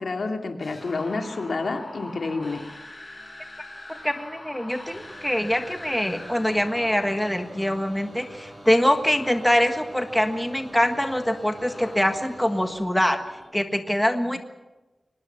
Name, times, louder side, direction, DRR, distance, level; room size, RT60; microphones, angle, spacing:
voice 1, 0.0-2.6, left 3 dB, 65° left, 4 dB, 2.6 m, -29 dB
sound 1, 0.6-13.5, left 1 dB, 20° left, 6.3 m, -44 dB
voice 2, 4.0-13.2 13.5-14.4, equal, 5° left, 6 dB, 1.5 m, -24 dB
sound 2, 4.9-12.7, right 1 dB, 35° right, 5.8 m, -46 dB
24.0 x 20.0 x 7.1 m, 1.1 s
wide cardioid pair, 115°, 0 cm